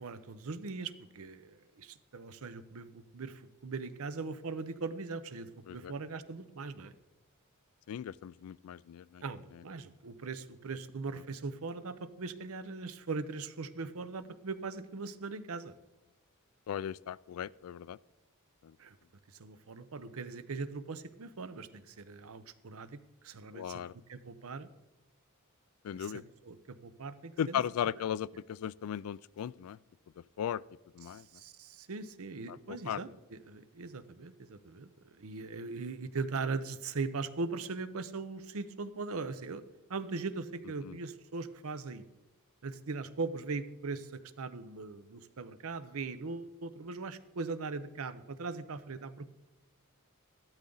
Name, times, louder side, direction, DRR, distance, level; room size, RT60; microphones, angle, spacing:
voice 1, 0.0-6.9 9.2-15.7 18.8-19.0 19.3-23.8 24.1-24.7 25.9-27.6 31.1-39.6 39.9-42.0 42.6-49.3, right 4 dB, 70° right, 13 dB, 0.7 m, -40 dB
voice 2, 7.9-9.2 9.5-9.6 11.2-11.3 16.7-18.0 18.6-18.8 23.5-23.9 25.8-26.2 27.4-29.8 30.2-30.6 30.9-31.3 32.5-33.0 40.8-41.0, left 9 dB, 70° left, 22 dB, 0.3 m, -37 dB
13.5 x 12.0 x 3.9 m, 1.0 s
head